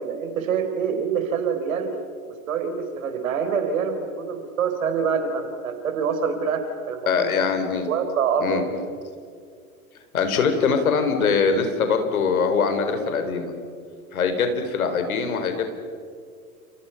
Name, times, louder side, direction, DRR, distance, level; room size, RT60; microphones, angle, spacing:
voice 1, 0.0-1.9 2.3-7.3 7.9-8.7, right 6 dB, 65° right, 7 dB, 4.5 m, -26 dB
voice 2, 7.1-7.9 8.4-8.6 10.1-13.5 14.1-15.6, left 5 dB, 70° left, 7 dB, 4.2 m, -22 dB
29.5 x 29.0 x 5.8 m, 2.2 s
figure-of-eight pair, 95°, 44 cm